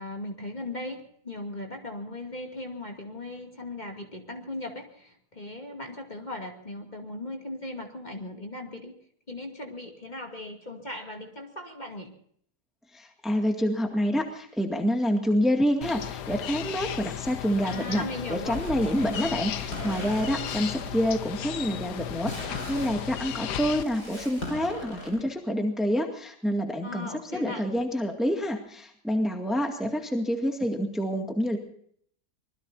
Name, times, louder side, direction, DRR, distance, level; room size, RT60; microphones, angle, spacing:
voice 1, 0.0-9.0 9.3-12.1 17.6-18.7 26.8-27.7, left 2 dB, 25° left, 2 dB, 2.5 m, -38 dB
voice 2, 12.9-18.0 18.3-31.6, equal, ahead, 2 dB, 2.0 m, -27 dB
sound 1, 15.8-23.8, left 10 dB, 90° left, 1.4 m, -35 dB
sound 2, 18.4-25.2, left 1 dB, 70° left, 6.0 m, -40 dB
26.0 x 20.5 x 2.7 m, 0.63 s
omnidirectional pair, 1.7 m